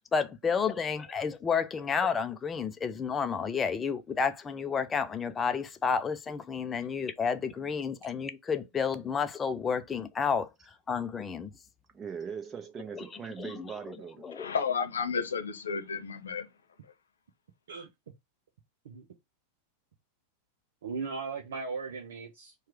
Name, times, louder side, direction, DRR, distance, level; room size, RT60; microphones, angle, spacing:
voice 1, 0.1-11.5 12.9-13.0 13.4-13.7 14.2-14.5, left 6 dB, 20° left, 0.6 m, -31 dB
voice 2, 11.9-14.3, right 6 dB, 20° right, 1.0 m, -40 dB
voice 3, 14.4-16.5, left 6 dB, 70° left, 0.9 m, -32 dB
voice 4, 20.8-22.5, right 4 dB, 60° right, 0.7 m, -37 dB
4.5 x 2.4 x 4.7 m
figure-of-eight pair, 90°, 0 cm